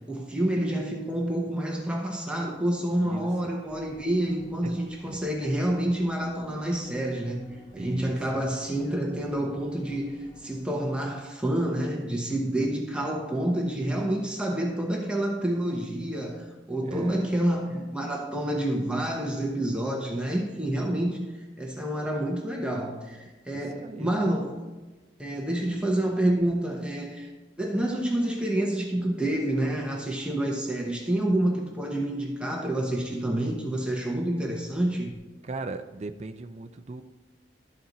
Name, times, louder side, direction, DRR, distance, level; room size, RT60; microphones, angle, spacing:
voice 1, 0.1-24.5 25.2-27.3 27.6-35.2, right 1 dB, 5° right, -1 dB, 0.9 m, -28 dB
voice 2, 3.0-3.3 4.6-4.8 5.1-5.2 7.7-8.2 13.1-13.3 16.8-17.3 23.5-24.1 35.4-37.0, right 2 dB, 35° right, 8 dB, 0.4 m, -37 dB
sound 1, 3.7-10.6, right 1 dB, 25° left, 1.3 m, -52 dB
12.0 x 4.3 x 3.9 m, 1.2 s
head